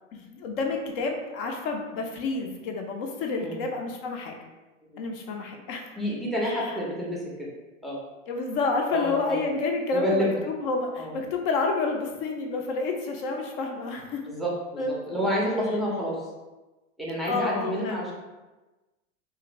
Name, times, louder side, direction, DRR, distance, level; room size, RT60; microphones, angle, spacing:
voice 1, 0.1-4.4 5.0-5.9 6.4-6.8 8.3-14.2 14.8-15.4 17.2-18.1, left 3 dB, 45° left, 3 dB, 0.5 m, -29 dB
voice 2, 6.0-7.5 7.8-8.0 8.9-9.4 9.9-10.4 11.0-11.1 14.3-16.3 17.0-18.1, equal, ahead, -5 dB, 0.5 m, -29 dB
2.6 x 2.4 x 2.9 m, 1.1 s
hypercardioid pair, 110°, 38 cm